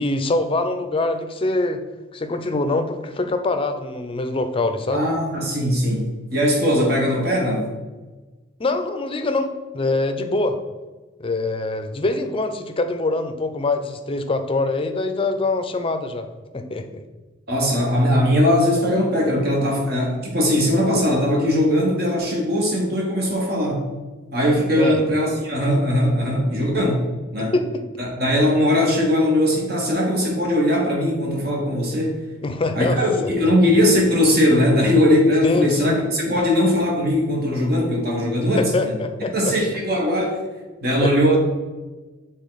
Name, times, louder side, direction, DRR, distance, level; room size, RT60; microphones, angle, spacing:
voice 1, 0.0-1.8 2.1-5.0 8.6-10.6 11.2-16.3 16.5-17.0 24.8-25.0 27.5-27.7 32.4-33.3 35.4-36.0 38.6-39.5 41.0-41.1, left 2 dB, 30° left, 8 dB, 0.5 m, -24 dB
voice 2, 4.9-7.7 17.5-23.9 24.3-27.1 27.3-27.5 28.0-32.2 32.7-38.9 39.3-40.4 40.8-41.4, left 1 dB, 55° right, 0 dB, 1.5 m, -20 dB
7.2 x 3.7 x 4.0 m, 1.2 s
head